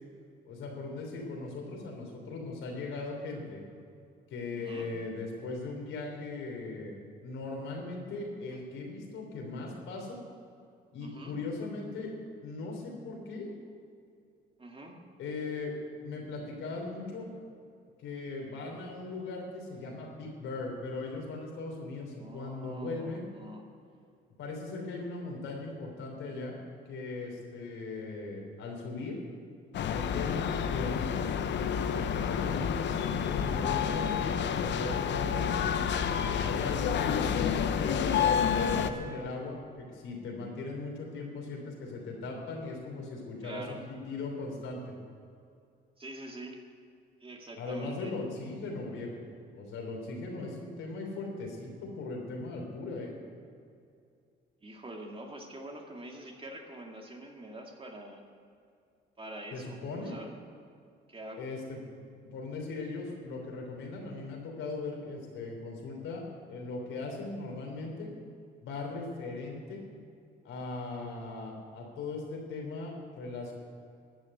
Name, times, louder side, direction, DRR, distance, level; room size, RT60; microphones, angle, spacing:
voice 1, 0.5-3.6 4.3-6.9 7.2-10.2 10.9-12.1 12.4-13.5 15.2-15.7 16.0-17.3 18.0-23.3 24.4-26.6 26.9-29.2 29.9-35.6 36.4-45.0 47.6-49.3 49.5-53.1 59.5-60.2 61.4-61.8 62.3-68.1 68.6-69.8 70.4-73.5, left 3 dB, 90° left, 0 dB, 3.3 m, -39 dB
voice 2, 4.5-4.9 11.0-11.4 14.6-15.0 22.2-23.6 43.4-43.8 46.0-46.6 47.2-48.2 54.6-58.2 59.2-60.3 61.1-61.5, right 1 dB, 25° right, 1 dB, 2.1 m, -45 dB
sound 1, 29.7-38.9, left 7 dB, 65° left, 0.8 m, -29 dB
12.5 x 6.8 x 9.6 m, 2.4 s
cardioid pair, 90°, 20 cm